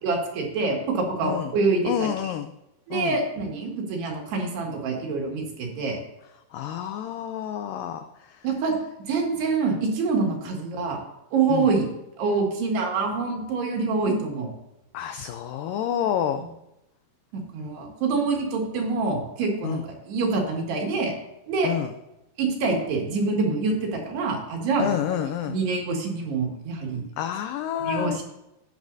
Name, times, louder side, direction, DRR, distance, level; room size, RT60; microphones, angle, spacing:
voice 1, 0.0-2.3 2.9-6.0 8.4-8.7 9.1-11.0 11.3-11.9 12.2-14.5 17.5-21.1 21.5-21.7 22.4-24.9 25.5-27.0 27.8-28.2, right 4 dB, 80° right, 0 dB, 4.2 m, -26 dB
voice 2, 1.2-1.5 1.8-2.5 2.9-3.2 6.5-8.4 11.5-11.7 14.9-16.4 19.6-19.8 21.6-21.9 24.8-25.6 27.2-28.2, left 10 dB, 85° left, 8 dB, 1.9 m, -29 dB
14.0 x 10.0 x 2.7 m, 0.89 s
omnidirectional pair, 4.6 m